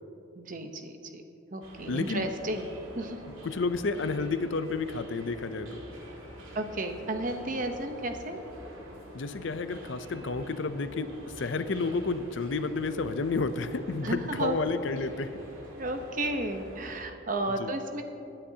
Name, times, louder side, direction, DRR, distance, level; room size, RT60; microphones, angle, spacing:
voice 1, 0.4-1.2 1.5-3.2 6.5-8.4 14.0-14.6 15.7-18.0, right 1 dB, 40° right, 5 dB, 0.8 m, -33 dB
sound 1, 1.6-17.0, equal, 90° right, 2.2 m, -47 dB
voice 2, 1.9-2.3 3.4-5.8 9.1-15.4 17.6-17.7, left 3 dB, 65° left, 11 dB, 0.5 m, -31 dB
21.0 x 10.0 x 2.8 m, 2.9 s
head